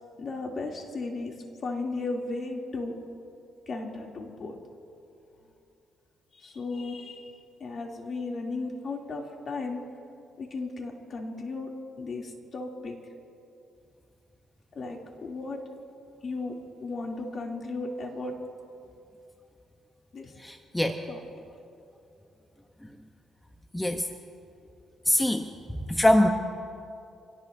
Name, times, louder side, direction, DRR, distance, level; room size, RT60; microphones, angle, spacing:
voice 1, 0.2-1.3 1.6-3.0 3.7-4.6 6.3-9.8 10.4-11.7 12.0-13.0 14.7-15.6 16.2-16.5 16.8-18.4 20.1-20.3 21.1-21.2, left 3 dB, 50° left, 0 dB, 2.8 m, -35 dB
voice 2, 20.4-21.0 23.7-24.0 25.1-25.4 25.9-26.3, left 1 dB, 10° left, 5 dB, 0.9 m, -22 dB
27.0 x 18.0 x 2.7 m, 2.6 s
cardioid pair, 90°, 0 cm